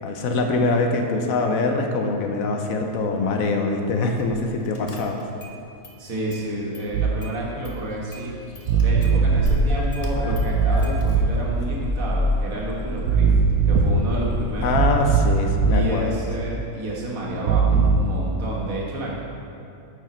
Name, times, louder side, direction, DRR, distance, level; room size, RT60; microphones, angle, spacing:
voice 1, 0.0-5.3 14.6-16.2, left 3 dB, 70° left, 3 dB, 1.1 m, -23 dB
Car / Engine starting, 4.2-4.4 4.7-5.6 5.8-6.9 7.2-15.0, left 1 dB, 40° left, 0.5 m, -28 dB
voice 2, 6.0-8.4 8.8-13.3 13.6-14.8 15.7-19.2, right 1 dB, 65° right, -4 dB, 1.7 m, -30 dB
sound 1, 6.9-7.2 8.7-9.7 10.3-11.6 13.1-14.2 14.7-15.9 17.5-18.0, right 5 dB, 80° right, 1.1 m, -19 dB
9.0 x 4.9 x 4.3 m, 2.6 s
omnidirectional pair, 1.5 m